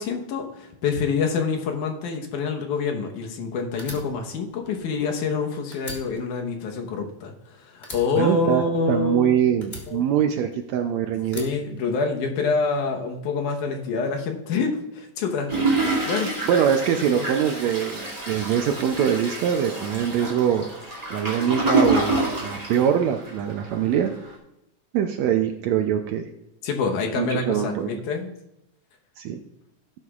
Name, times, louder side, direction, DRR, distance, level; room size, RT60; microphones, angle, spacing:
voice 1, 0.0-9.4 9.9-10.0 11.3-16.4 17.1-17.3 26.6-28.3, left 4 dB, 75° left, 3 dB, 2.5 m, -26 dB
Fire, 3.8-5.4 5.7-7.4 7.8-9.2 9.6-10.8 11.3-12.4, left 2 dB, 30° left, 1.3 m, -41 dB
voice 2, 8.2-11.4 16.5-20.6 21.1-24.1 24.9-26.3 27.2-27.9 29.2-29.4, right 9 dB, 75° right, 5 dB, 1.7 m, -23 dB
Toilet flush, 15.5-23.5 24.0-24.1 24.3-24.4, right 2 dB, 15° right, 2.0 m, -27 dB
17.0 x 8.1 x 2.4 m, 0.86 s
omnidirectional pair, 3.7 m